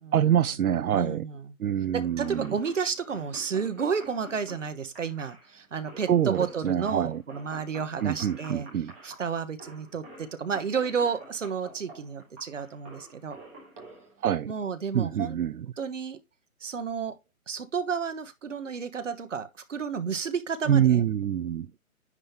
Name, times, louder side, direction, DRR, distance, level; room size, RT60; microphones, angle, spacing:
voice 1, 0.1-1.2 1.6-2.6 6.1-7.2 8.0-8.9 14.2-14.5 14.9-15.7 20.7-21.7, right 9 dB, 80° right, 0.6 m, -25 dB
voice 2, 0.9-1.4 1.9-8.7 9.0-13.4 14.4-15.4 15.8-16.2 16.6-17.1 17.5-21.0, right 6 dB, 60° right, 1.3 m, -31 dB
sound 1, 2.0-14.9, right 1 dB, 10° right, 1.3 m, -49 dB
9.8 x 3.7 x 2.8 m
hypercardioid pair, 180°, 43 cm